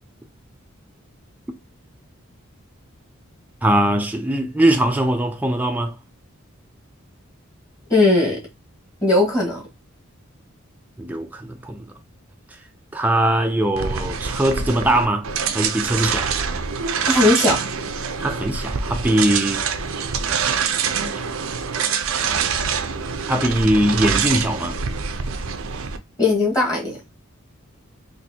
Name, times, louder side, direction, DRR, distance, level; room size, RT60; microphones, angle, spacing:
voice 1, 3.6-6.0 11.0-11.9 12.9-15.3 15.5-16.3 18.2-19.6 23.3-24.8, right 1 dB, 10° right, 0.4 m, -21 dB
voice 2, 7.9-8.4 9.0-9.6 17.1-17.6 26.2-27.0, left 2 dB, 20° left, 1.4 m, -18 dB
sound 1, 13.7-26.0, right 6 dB, 80° right, 0.5 m, -25 dB
4.1 x 2.6 x 2.7 m
head